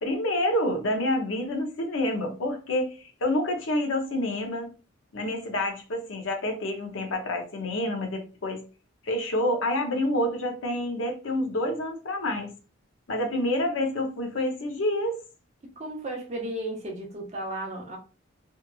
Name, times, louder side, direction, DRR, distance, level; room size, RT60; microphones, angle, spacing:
voice 1, 0.0-4.7 5.1-8.6 9.0-12.5 13.1-15.2, left 1 dB, 75° left, 0.7 m, -28 dB
voice 2, 15.8-18.0, right 1 dB, 35° right, 0.7 m, -34 dB
2.8 x 2.4 x 2.3 m
head